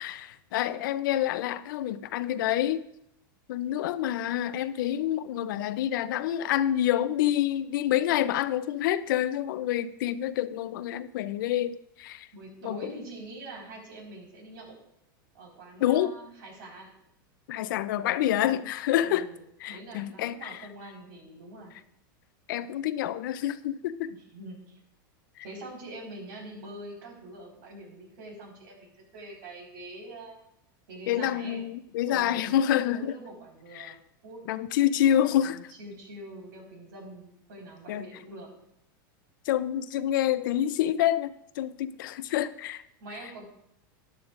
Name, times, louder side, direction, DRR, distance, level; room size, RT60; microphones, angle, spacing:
voice 1, 0.0-2.9 3.5-12.3 12.6-12.9 15.8-16.1 17.5-19.3 19.6-20.6 22.5-24.1 25.4-25.5 31.1-33.1 33.8-33.9 34.5-35.6 37.9-38.0 39.5-42.8, left 11 dB, 70° left, 0.6 m, -27 dB
voice 2, 12.3-14.8 15.3-16.9 19.0-19.4 19.7-21.7 24.3-24.8 25.4-30.4 30.9-31.6 32.1-32.5 32.9-34.0 34.2-34.4 35.4-38.5 43.0-43.4, right 1 dB, 70° right, 4.6 m, -44 dB
13.5 x 10.5 x 2.5 m
supercardioid pair, 135°, 11 cm